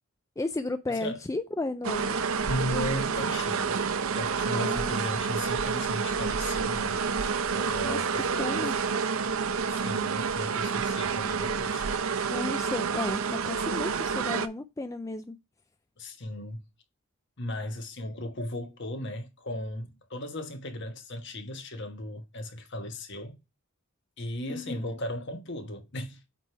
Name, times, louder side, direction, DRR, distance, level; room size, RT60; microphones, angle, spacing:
voice 1, 0.4-2.2 4.5-5.0 7.8-8.1 8.4-8.8 12.3-15.4 24.5-25.0, left 2 dB, 15° left, 0.3 m, -34 dB
sound 1, 1.8-14.5, right 5 dB, 75° right, 0.6 m, -29 dB
voice 2, 2.5-3.8 4.1-7.0 7.5-8.6 9.7-11.9 16.0-16.6 17.4-23.4 24.2-26.2, left 1 dB, 55° left, 1.4 m, -36 dB
8.3 x 3.4 x 4.6 m
head